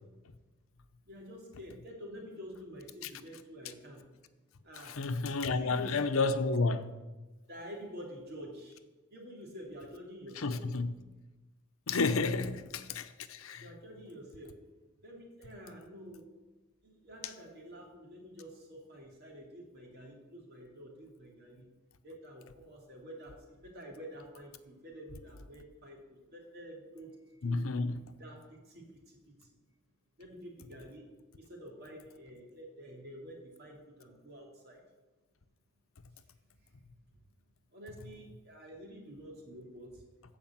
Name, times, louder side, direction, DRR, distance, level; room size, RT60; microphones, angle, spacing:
voice 1, 1.0-4.1 4.6-5.0 5.4-6.3 7.5-8.8 9.1-10.6 13.6-14.6 15.0-16.3 16.8-21.7 22.0-26.0 26.3-27.8 28.2-29.5 30.2-31.1 31.4-34.8 36.6-36.7 37.7-40.0, equal, 50° right, 2.8 m, -49 dB
voice 2, 4.8-6.9 10.4-10.9 11.9-13.6 27.4-28.0, left 3 dB, 75° left, 0.8 m, -31 dB
15.0 x 5.1 x 7.4 m
head